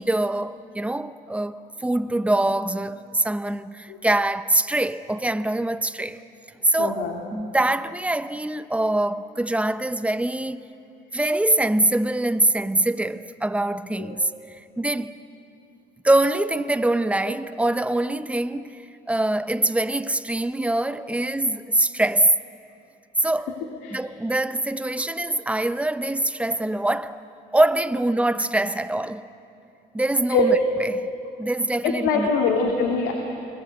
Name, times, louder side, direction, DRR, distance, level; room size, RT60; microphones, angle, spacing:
voice 1, 0.0-6.2 6.6-7.0 7.3-10.7 11.1-15.2 16.0-22.3 23.2-23.6 23.9-27.2 27.5-29.2 29.9-31.1 31.4-32.3, right 1 dB, 5° right, 0.8 m, -24 dB
voice 2, 6.8-7.2 14.0-14.2 23.8-24.0 30.3-30.5 31.8-33.1, left 4 dB, 90° left, 2.5 m, -23 dB
29.5 x 21.5 x 8.2 m
cardioid pair, 110°, 17 cm